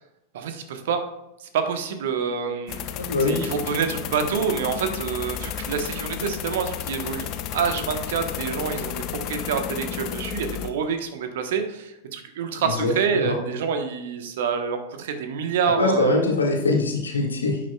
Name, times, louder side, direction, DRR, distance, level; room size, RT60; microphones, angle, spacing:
voice 1, 0.3-1.0 1.4-2.8 3.2-16.1, right 6 dB, 55° right, 6 dB, 1.1 m, -27 dB
sound 1, 2.7-10.7, left 10 dB, 40° left, 0.6 m, -32 dB
voice 2, 3.0-3.5 12.6-13.4 15.8-17.6, left 3 dB, 70° left, 0 dB, 1.9 m, -23 dB
10.5 x 8.5 x 2.3 m, 0.88 s
figure-of-eight pair, 90°, 0 cm